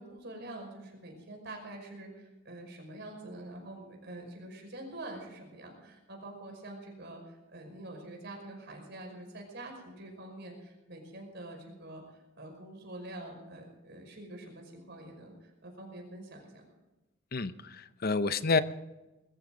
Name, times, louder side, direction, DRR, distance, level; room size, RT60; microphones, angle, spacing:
voice 1, 0.0-12.0 12.4-16.6, right 1 dB, 55° right, 1 dB, 5.5 m, -46 dB
voice 2, 17.3-18.6, left 4 dB, 45° left, 12 dB, 0.8 m, -29 dB
21.5 x 14.5 x 3.9 m, 1.1 s
head